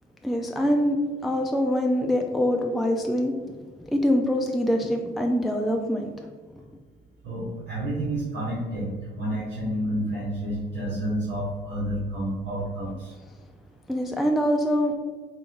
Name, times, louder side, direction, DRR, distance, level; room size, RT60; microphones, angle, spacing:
voice 1, 0.2-1.0 1.2-3.3 3.9-6.3 13.9-14.9, equal, ahead, 2 dB, 0.3 m, -24 dB
voice 2, 7.2-13.1, right 1 dB, 60° right, -6 dB, 1.1 m, -30 dB
3.9 x 2.2 x 3.8 m, 1.4 s
cardioid pair, 90°, 20 cm